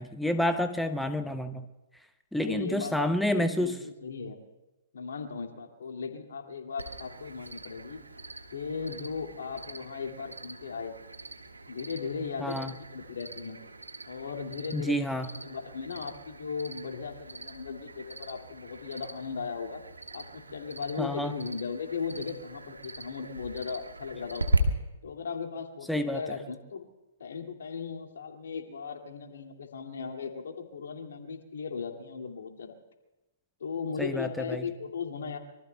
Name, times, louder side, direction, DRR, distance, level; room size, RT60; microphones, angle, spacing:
voice 1, 0.0-1.6 2.3-3.8 12.4-12.7 14.7-15.3 21.0-21.3 25.9-26.4 34.0-34.6, left 1 dB, ahead, 8 dB, 0.7 m, -29 dB
voice 2, 2.4-4.4 4.9-8.0 8.5-10.9 11.7-13.6 14.1-19.8 20.1-24.6 25.0-26.8 27.2-32.8 33.6-35.4, left 5 dB, 65° left, 3 dB, 2.3 m, -37 dB
Cricket, 6.8-24.6, right 3 dB, 85° right, 1.6 m, -39 dB
26.0 x 23.5 x 2.3 m, 1.0 s
figure-of-eight pair, 120°, 0 cm